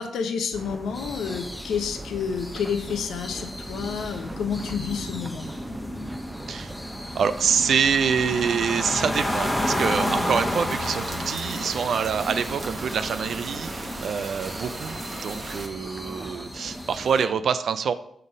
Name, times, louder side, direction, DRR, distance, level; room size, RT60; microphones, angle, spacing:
voice 1, 0.0-5.5, left 6 dB, 75° left, 6 dB, 0.6 m, -29 dB
sound 1, 0.5-17.2, right 2 dB, 20° right, 0.6 m, -41 dB
sound 2, 0.9-17.2, left 1 dB, 15° left, 1.2 m, -33 dB
voice 2, 7.1-17.9, right 6 dB, 65° right, 12 dB, 0.4 m, -26 dB
sound 3, 9.1-15.7, right 2 dB, 45° right, 0.9 m, -37 dB
5.5 x 3.9 x 5.0 m, 0.71 s
hypercardioid pair, 45°, 0 cm